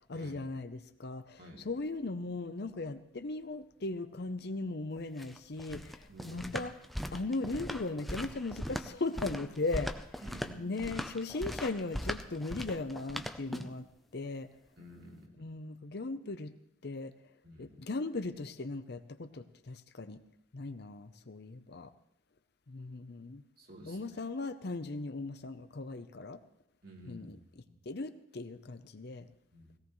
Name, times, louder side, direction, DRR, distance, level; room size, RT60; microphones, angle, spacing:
voice 1, 0.1-6.7 7.1-10.2 10.6-13.9 14.1-14.5 15.4-16.5 16.8-17.1 17.6-20.2 20.5-21.9 22.7-23.4 23.8-26.4 27.1-27.4 27.9-29.3, left 3 dB, 55° left, 11 dB, 0.7 m, -38 dB
sound 1, 5.0-13.9, equal, ahead, 0.5 m, -39 dB
voice 2, 6.1-6.6 10.2-10.8 14.8-15.4 17.4-17.8 23.6-24.2 26.8-27.4 27.6-27.8 29.5-29.8, equal, 50° right, -1 dB, 2.7 m, -51 dB
18.5 x 17.0 x 3.1 m, 0.71 s
head